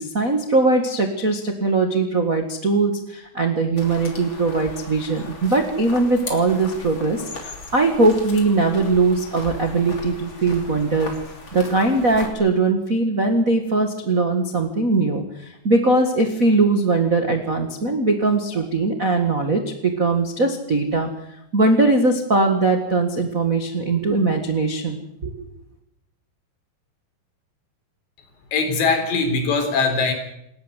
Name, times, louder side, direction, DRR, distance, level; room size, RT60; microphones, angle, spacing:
voice 1, 0.0-11.1 11.5-21.1 21.5-25.5, right 3 dB, 90° right, 4 dB, 0.7 m, -20 dB
sound 1, 3.8-12.3, left 3 dB, 30° left, 3.4 m, -38 dB
voice 2, 28.5-30.1, left 4 dB, 80° left, 5 dB, 6.1 m, -21 dB
27.5 x 12.5 x 8.2 m, 0.79 s
omnidirectional pair, 5.0 m